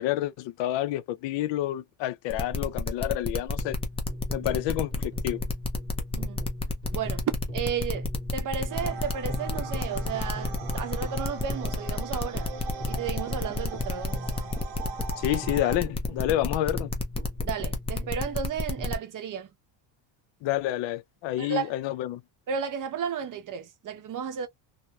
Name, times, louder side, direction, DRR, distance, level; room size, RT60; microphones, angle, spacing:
voice 1, 0.0-3.8 4.3-5.4 15.2-16.9 20.4-22.2, left 14 dB, 60° left, 0.5 m, -29 dB
sound 1, 2.3-19.0, left 3 dB, 10° left, 0.4 m, -30 dB
sound 2, 3.6-19.0, equal, 10° right, 0.8 m, -41 dB
voice 2, 6.9-8.1 8.3-12.5 12.9-14.3 17.4-19.5 21.4-21.7 22.5-24.5, right 7 dB, 40° right, 0.7 m, -33 dB
sound 3, 8.7-15.8, right 5 dB, 70° right, 0.9 m, -41 dB
2.9 x 2.0 x 2.2 m
cardioid pair, 120°, 50 cm